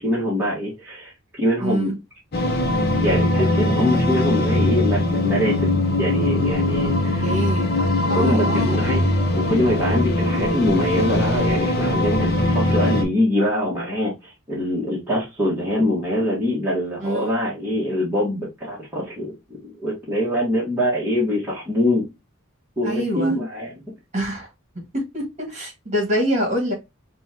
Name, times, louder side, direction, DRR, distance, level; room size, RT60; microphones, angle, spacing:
voice 1, 0.0-2.0 2.5-7.3 8.1-9.1 9.3-19.3 19.6-22.0 22.8-23.8, left 1 dB, 10° right, 1.4 m, -24 dB
voice 2, 1.6-1.9 7.2-7.7 8.1-8.8 17.0-17.3 22.8-23.4 24.1-24.5 24.9-26.7, equal, 35° right, 1.8 m, -25 dB
sound 1, 2.3-13.0, left 1 dB, 50° left, 0.8 m, -21 dB
5.6 x 2.4 x 2.8 m
head